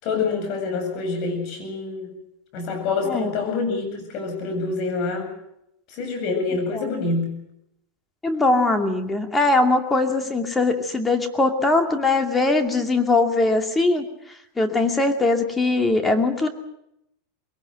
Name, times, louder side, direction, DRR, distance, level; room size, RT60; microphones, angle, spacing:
voice 1, 0.0-2.1 2.5-5.3 5.9-7.3, left 4 dB, 50° left, 4 dB, 7.7 m, -26 dB
voice 2, 8.2-14.0 14.6-16.5, left 2 dB, 15° left, 6 dB, 2.4 m, -21 dB
21.5 x 19.0 x 7.9 m, 0.80 s
hypercardioid pair, 115°, 0 cm